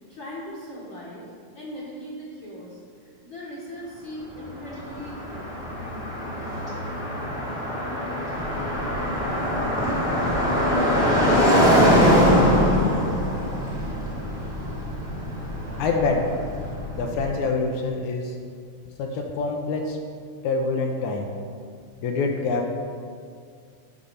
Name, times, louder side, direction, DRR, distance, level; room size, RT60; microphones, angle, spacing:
voice 1, 0.1-1.2 1.5-2.8 3.2-5.5, equal, 50° left, -7 dB, 1.6 m, -38 dB
Car passing by, 4.3-16.4, equal, ahead, 0.9 m, -22 dB
Boat Water vehicle, 8.3-17.3, left 1 dB, 65° right, 1.7 m, -35 dB
voice 2, 15.8-16.3 17.0-18.3 19.0-20.0 20.4-21.3 22.0-22.7, left 3 dB, 80° left, 2 dB, 1.9 m, -25 dB
10.0 x 4.1 x 5.6 m, 2.2 s
omnidirectional pair, 3.6 m